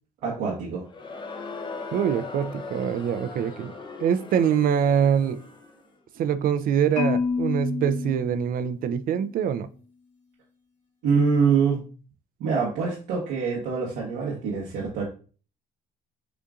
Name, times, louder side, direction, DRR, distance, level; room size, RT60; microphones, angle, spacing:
voice 1, 0.2-0.8 11.0-11.8 12.4-15.0, right 5 dB, 90° right, -5 dB, 1.1 m, -24 dB
Crowd, 0.8-5.9, left 4 dB, 25° left, 0.6 m, -39 dB
voice 2, 1.9-3.7 4.0-5.4 6.2-9.7, right 8 dB, 55° right, 12 dB, 0.4 m, -24 dB
Marimba xylophone, 7.0-9.1, left 5 dB, 50° left, 1.7 m, -29 dB
6.5 x 2.5 x 2.4 m, 0.38 s
cardioid pair, 110°, 17 cm